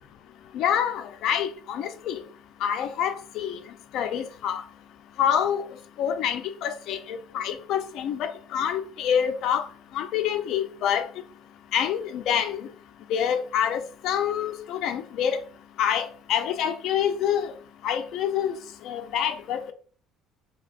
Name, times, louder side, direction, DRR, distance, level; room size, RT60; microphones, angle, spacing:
voice 1, 0.5-2.2 2.6-3.6 3.9-4.6 5.2-5.6 6.0-9.6 9.9-11.1 11.7-12.7 13.1-15.4 15.8-17.5 17.8-18.5 18.9-19.7, left 9 dB, 65° left, 0.5 m, -26 dB
4.8 x 2.9 x 2.4 m
cardioid pair, 135°, 0 cm